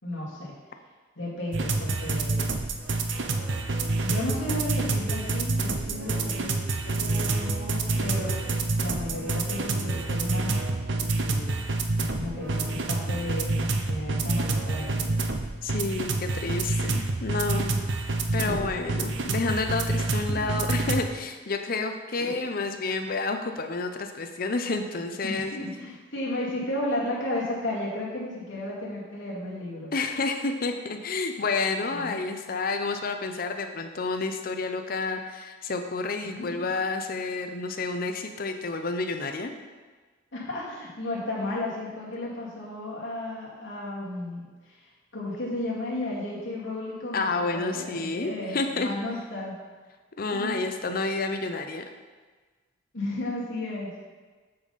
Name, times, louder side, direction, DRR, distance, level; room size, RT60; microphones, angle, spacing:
voice 1, 0.0-0.5 1.2-2.5 3.4-6.5 6.8-8.3 8.8-10.6 11.2-15.1 18.3-19.5 20.3-20.6 22.2-22.4 25.2-29.9 31.9-32.2 36.2-36.7 40.3-49.5 50.3-50.6 52.9-53.9, left 1 dB, 70° left, -6 dB, 2.3 m, -34 dB
sound 1, 1.5-21.1, right 3 dB, 65° right, 0.6 m, -28 dB
voice 2, 15.6-17.8 18.3-25.5 29.9-39.5 47.1-48.9 50.2-51.8, left 3 dB, 45° left, 6 dB, 0.6 m, -30 dB
7.8 x 5.4 x 4.1 m, 1.4 s
head